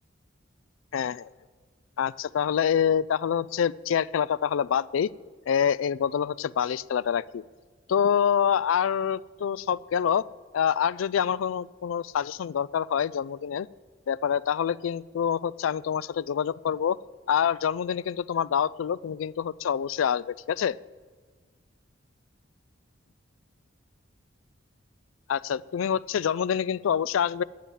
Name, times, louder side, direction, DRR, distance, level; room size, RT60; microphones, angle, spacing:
voice 1, 0.9-1.3 2.0-5.1 5.5-7.4 7.9-10.2 10.5-13.7 14.1-17.0 17.3-20.8 25.3-27.4, left 8 dB, 85° left, 20 dB, 0.3 m, -26 dB
11.5 x 9.2 x 7.3 m, 1.4 s
head